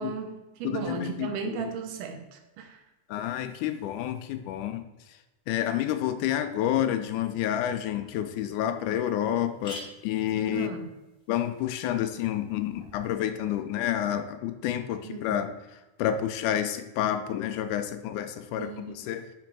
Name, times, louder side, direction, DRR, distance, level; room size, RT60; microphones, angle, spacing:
voice 1, 0.0-2.8 10.5-10.9 15.0-15.4 18.6-19.0, right 6 dB, 90° right, 5 dB, 2.5 m, -36 dB
voice 2, 0.6-1.7 3.1-4.8 5.1-5.2 5.5-10.8 11.3-15.5 16.0-19.3, left 11 dB, 80° left, 8 dB, 2.0 m, -29 dB
sound 1, 8.0-8.1 8.6-8.7 8.9-9.0 9.3-13.1, left 2 dB, 60° left, 0.5 m, -48 dB
5.9 x 5.1 x 4.6 m, 1.1 s
omnidirectional pair, 3.7 m